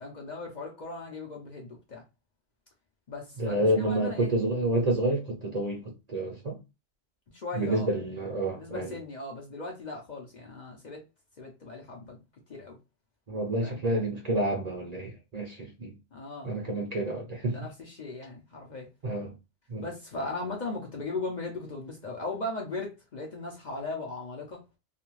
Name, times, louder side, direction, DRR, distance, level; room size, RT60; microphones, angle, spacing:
voice 1, 0.0-2.0 3.1-4.3 7.3-7.9 8.5-11.0 11.4-12.2 12.5-12.8 13.6-13.8 16.1-16.5 17.5-18.9 19.8-24.6, left 2 dB, 50° left, 0.6 m, -38 dB
voice 2, 3.4-6.6 7.5-8.9 13.3-15.9 16.4-17.6 19.0-19.3 19.7-19.8, right 1 dB, 45° right, 0.6 m, -29 dB
2.4 x 2.2 x 3.0 m
omnidirectional pair, 1.2 m